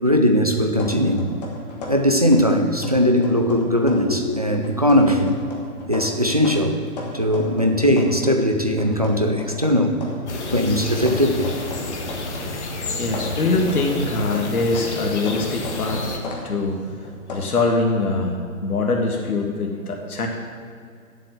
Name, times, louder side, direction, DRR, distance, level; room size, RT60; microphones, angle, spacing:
voice 1, 0.0-1.3 1.9-5.4 5.9-6.8 7.1-10.0 10.5-11.5, equal, 30° right, 4 dB, 0.4 m, -19 dB
sound 1, 0.8-2.5 2.8-4.2 4.6-8.4 8.8-12.6 12.8-17.4, left 2 dB, 30° left, 1.5 m, -36 dB
sound 2, 10.3-16.2, left 2 dB, 50° left, 1.5 m, -30 dB
voice 2, 13.0-16.1 16.4-16.8 17.3-20.3, left 3 dB, 85° left, 1 dB, 1.8 m, -23 dB
9.2 x 7.5 x 6.6 m, 2.2 s
hypercardioid pair, 170°, 43 cm